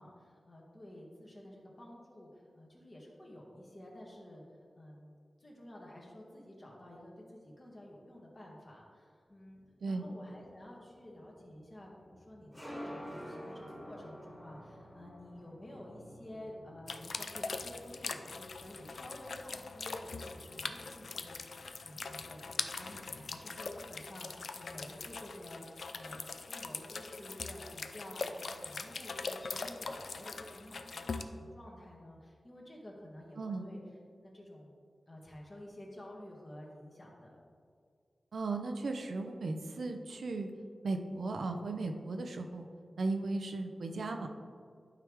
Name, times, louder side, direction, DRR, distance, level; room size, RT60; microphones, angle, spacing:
voice 1, 0.0-4.4 4.8-25.6 25.9-33.8 34.2-34.8 35.1-37.4, left 1 dB, 35° left, -3 dB, 1.8 m, -51 dB
sound 1, 9.5-23.6, equal, ahead, 1.8 m, -52 dB
sound 2, 16.9-31.2, left 4 dB, 75° left, 0.4 m, -42 dB
voice 2, 33.4-33.7 38.3-40.5 40.8-42.7 43.0-44.3, right 3 dB, 80° right, 5 dB, 0.6 m, -36 dB
11.5 x 4.8 x 3.6 m, 2.1 s
wide cardioid pair, 90°, 0 cm